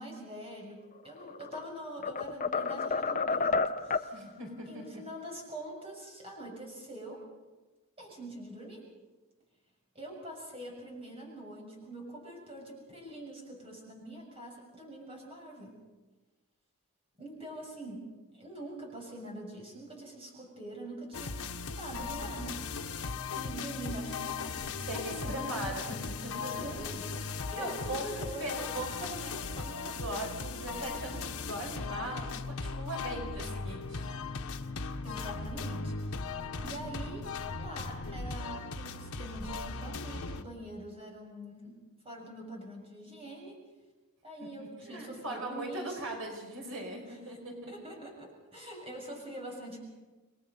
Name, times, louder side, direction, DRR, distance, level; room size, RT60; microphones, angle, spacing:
voice 1, 0.0-4.2 4.6-7.2 8.0-8.8 9.9-15.8 17.2-21.4 21.7-22.7 23.3-25.6 26.3-27.2 27.5-28.5 35.0-36.3 36.6-37.3 37.6-41.8 42.0-43.6 44.2-46.0 47.1-47.4 47.7-49.8, right 1 dB, 25° right, 0 dB, 6.8 m, -44 dB
sound 1, 1.2-1.7 2.0-4.1, left 4 dB, 35° left, 0.7 m, -30 dB
voice 2, 4.1-5.0 24.9-26.5 27.3-28.1 28.4-34.0 44.4-47.7, right 1 dB, 70° right, 1 dB, 5.4 m, -40 dB
sound 2, 21.1-40.4, left 4 dB, 85° left, 1.2 m, -38 dB
29.5 x 22.0 x 5.5 m, 1.2 s
head